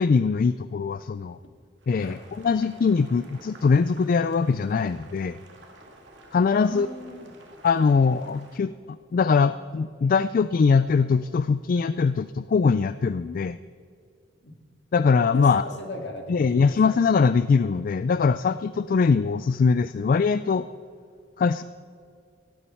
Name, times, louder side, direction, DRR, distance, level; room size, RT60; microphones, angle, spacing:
voice 1, 0.0-1.4 1.9-5.4 6.3-6.9 7.6-8.7 9.1-13.6 14.9-15.6 16.3-20.7 21.4-21.6, left 5 dB, 50° left, 14 dB, 0.3 m, -22 dB
Boiling, 1.8-8.6, right 2 dB, 75° right, 2.3 m, -51 dB
voice 2, 6.6-7.3 14.4-14.6 15.3-17.0, left 1 dB, 70° left, 4 dB, 2.1 m, -38 dB
16.5 x 15.5 x 4.4 m, 2.2 s
head